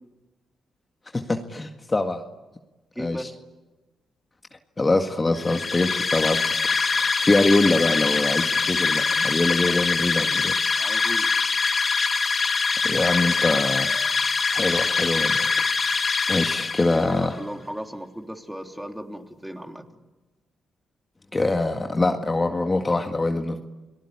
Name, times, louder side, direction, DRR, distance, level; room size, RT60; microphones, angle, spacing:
voice 1, 1.1-2.2 3.0-3.3 4.8-6.4 6.9-10.6 12.8-13.9 14.5-15.5 16.3-17.3 21.3-23.6, left 2 dB, 25° left, 4 dB, 1.9 m, -23 dB
voice 2, 2.9-3.3 9.7-9.8 10.8-11.3 16.8-20.0, equal, 5° right, 4 dB, 3.5 m, -36 dB
sound 1, 5.4-17.2, left 4 dB, 45° left, 2.4 m, -23 dB
30.0 x 19.0 x 10.0 m, 1.1 s
supercardioid pair, 55°, 0 cm